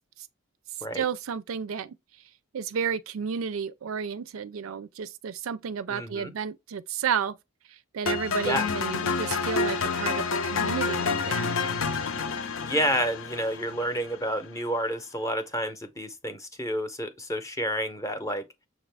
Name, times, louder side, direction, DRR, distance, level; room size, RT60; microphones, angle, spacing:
voice 1, 0.9-2.0 2.5-7.4 7.9-11.5, right 7 dB, 85° right, 0.4 m, -32 dB
voice 2, 5.9-6.3 8.4-8.6 12.6-18.4, equal, 15° left, 0.6 m, -29 dB
sound 1, 8.1-14.2, left 4 dB, 70° left, 0.6 m, -29 dB
6.6 x 2.5 x 3.3 m
head